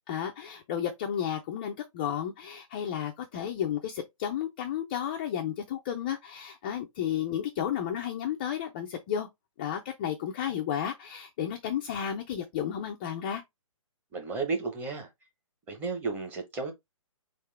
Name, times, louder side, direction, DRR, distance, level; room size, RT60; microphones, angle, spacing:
voice 1, 0.1-9.3 9.6-13.4, left 9 dB, 15° left, 0.3 m, -32 dB
voice 2, 14.1-15.1 15.7-16.7, right 4 dB, 10° right, 0.8 m, -33 dB
4.2 x 3.6 x 3.2 m
hypercardioid pair, 155°, 18 cm